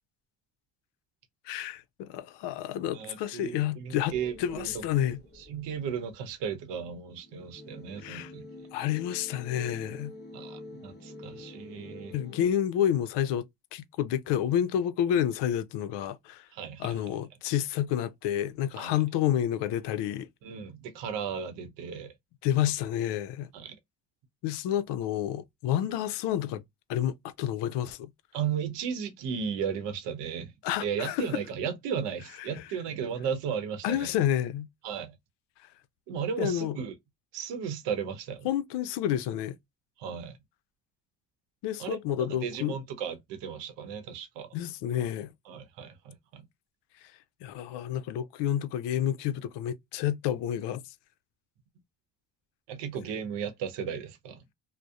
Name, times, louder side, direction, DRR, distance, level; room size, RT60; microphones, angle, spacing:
voice 1, 1.5-5.2 8.0-8.3 8.7-10.1 12.1-13.5 13.7-16.5 16.8-20.3 22.4-23.5 24.4-26.6 26.9-28.1 30.6-31.2 32.6-32.7 33.8-34.7 36.4-36.8 38.4-39.6 41.6-42.8 44.5-45.3 47.4-50.8, left 11 dB, 75° left, 0.5 m, -29 dB
voice 2, 2.9-4.8 5.4-8.4 10.3-12.1 16.5-17.0 18.8-18.9 20.4-22.1 23.5-23.8 28.3-30.5 30.8-34.1 34.8-35.1 36.1-36.9 37.3-38.5 40.0-40.4 41.8-44.5 45.5-46.4 52.7-54.4, right 7 dB, 80° right, 0.8 m, -35 dB
sound 1, 4.1-6.2 7.1-12.5, left 2 dB, 25° left, 0.8 m, -47 dB
2.7 x 2.0 x 2.2 m
supercardioid pair, 70°, 42 cm